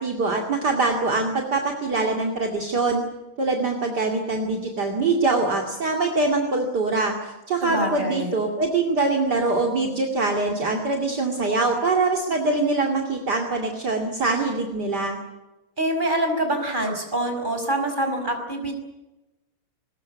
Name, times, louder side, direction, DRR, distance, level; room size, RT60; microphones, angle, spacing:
voice 1, 0.0-3.0 3.4-15.2, right 3 dB, 50° right, 1 dB, 3.0 m, -23 dB
voice 2, 7.6-8.4 15.8-18.7, right 1 dB, 20° right, 4 dB, 5.4 m, -25 dB
22.0 x 20.5 x 9.4 m, 1.0 s
omnidirectional pair, 2.3 m